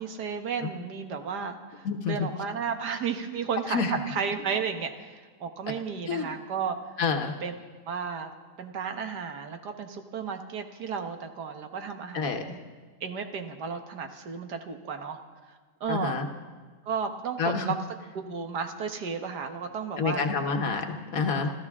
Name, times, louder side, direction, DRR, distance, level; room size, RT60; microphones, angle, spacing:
voice 1, 0.0-6.8 7.4-7.6 7.9-8.3 8.6-12.6 13.0-15.2 15.8-16.2 16.9-17.8 18.2-20.3 21.2-21.3, right 6 dB, 85° right, 6 dB, 1.8 m, -33 dB
voice 2, 1.8-2.1 3.7-3.9 6.1-6.3 7.0-7.3 12.1-12.4 15.9-16.3 17.4-17.6 20.0-21.5, left 5 dB, 60° left, 5 dB, 1.6 m, -28 dB
29.5 x 13.5 x 3.7 m, 1.4 s
omnidirectional pair, 1.7 m